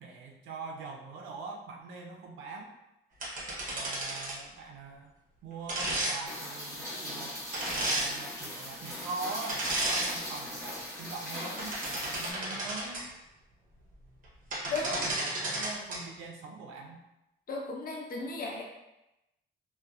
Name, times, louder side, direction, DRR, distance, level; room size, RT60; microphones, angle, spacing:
voice 1, 0.0-2.7 3.7-5.1 5.4-7.4 7.8-13.0 14.6-17.0, right 3 dB, 85° right, 1 dB, 0.4 m, -42 dB
sound 1, 3.2-4.4 5.7-6.1 7.5-8.1 9.5-10.1 10.6-10.8 11.4-13.0 14.2-14.3 14.5-16.0, right 2 dB, 40° right, 0.8 m, -33 dB
Rain, 6.3-12.3, left 1 dB, 15° left, 1.0 m, -40 dB
voice 2, 17.5-18.6, left 3 dB, 50° left, -1 dB, 0.6 m, -35 dB
2.6 x 2.1 x 2.3 m, 0.93 s
cardioid pair, 90°, 20 cm